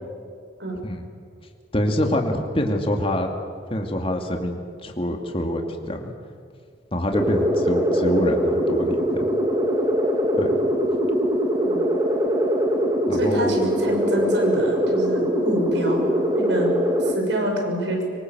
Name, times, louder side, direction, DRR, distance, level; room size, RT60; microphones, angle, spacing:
voice 1, 1.7-3.3 3.7-6.1 6.9-9.3 10.4-10.6 13.1-13.6, left 1 dB, 30° left, 3 dB, 2.4 m, -25 dB
sound 1, 7.1-17.1, equal, 25° right, 2.7 m, -22 dB
voice 2, 13.1-16.1 16.3-18.1, equal, 75° right, 2 dB, 6.4 m, -26 dB
24.5 x 24.5 x 7.9 m, 2.2 s
head